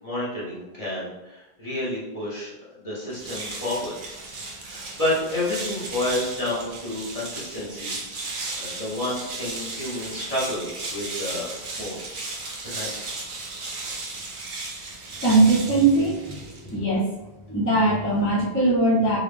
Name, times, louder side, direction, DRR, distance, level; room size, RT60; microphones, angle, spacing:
voice 1, 0.0-3.9 4.6-8.0 8.6-12.1 12.6-12.9, left 1 dB, 35° left, -7 dB, 1.1 m, -30 dB
sound 1, 3.1-16.8, right 3 dB, 55° right, 0.8 m, -35 dB
voice 2, 15.2-17.1 17.5-19.2, right 2 dB, 15° left, -8 dB, 0.8 m, -20 dB
3.9 x 2.4 x 3.3 m, 0.99 s
omnidirectional pair, 1.1 m